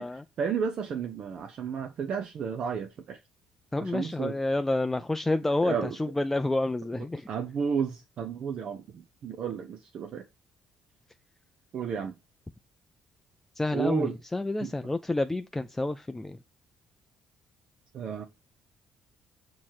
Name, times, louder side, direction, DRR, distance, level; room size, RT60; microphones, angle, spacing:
voice 1, 0.4-3.2 3.8-4.3 5.6-6.0 7.3-10.3 11.7-12.2 13.7-14.1 14.6-14.7 17.9-18.2, right 6 dB, 50° right, 0.6 m, -32 dB
voice 2, 3.7-7.3 13.6-16.4, left 2 dB, 15° left, 0.4 m, -29 dB
7.0 x 3.1 x 4.4 m
figure-of-eight pair, 45°, 2 cm